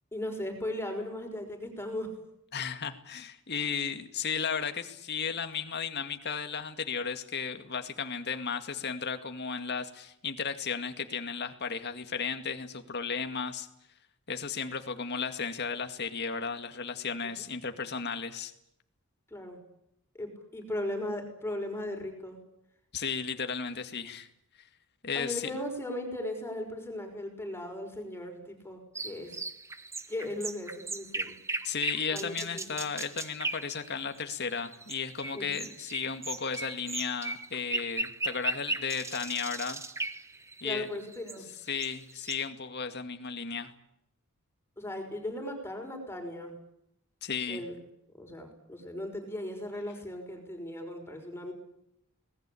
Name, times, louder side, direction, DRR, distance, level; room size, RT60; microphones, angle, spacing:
voice 1, 0.1-2.1 17.2-17.4 19.3-19.6 20.1-22.4 25.1-29.4 30.1-31.3 32.1-32.8 35.3-35.6 40.6-41.5 44.8-46.6 47.5-47.8 48.1-51.5, left 1 dB, 10° left, 4 dB, 5.7 m, -37 dB
voice 2, 2.5-13.7 14.3-18.5 22.9-24.3 25.0-25.4 31.6-39.8 40.6-40.9 41.7-43.7 47.2-47.6, left 6 dB, 50° left, 7 dB, 2.1 m, -34 dB
sound 1, 29.0-42.5, right 3 dB, 15° right, 1.2 m, -37 dB
26.0 x 20.0 x 8.6 m, 0.78 s
head